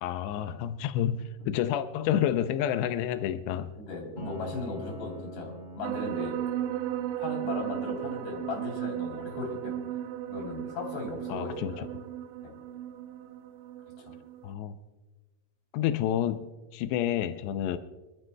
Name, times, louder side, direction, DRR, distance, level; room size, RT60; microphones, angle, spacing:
voice 1, 0.0-3.7 11.3-11.9 14.4-14.8 15.7-16.5 16.7-17.8, left 10 dB, 90° left, 10 dB, 2.8 m, -29 dB
voice 2, 3.8-6.3 7.2-9.8 10.3-11.9 12.4-12.6 14.1-14.2, left 3 dB, 75° left, 0 dB, 5.4 m, -37 dB
Piano, 4.2-13.7, equal, 40° left, 1.8 m, -48 dB
sound 1, 5.8-14.5, right 12 dB, 90° right, 2.8 m, -35 dB
26.5 x 12.5 x 2.2 m, 1.2 s
omnidirectional pair, 4.8 m